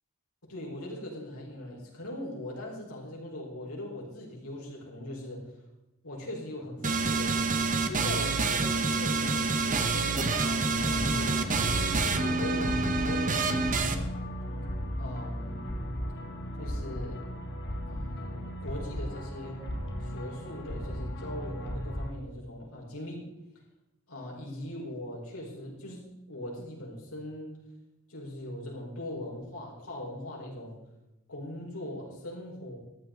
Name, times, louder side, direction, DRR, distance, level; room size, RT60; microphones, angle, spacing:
voice 1, 0.4-5.4 6.0-11.3 11.9-14.1 15.0-15.7 16.6-17.2 17.9-19.6 20.0-23.3 24.1-27.6 28.1-30.8 31.3-32.8, left 1 dB, 85° left, -3 dB, 4.9 m, -40 dB
sound 1, 6.8-13.9, right 3 dB, 40° right, 1.1 m, -27 dB
sound 2, 10.8-22.1, equal, 55° left, 1.9 m, -35 dB
14.0 x 11.5 x 3.9 m, 0.96 s
head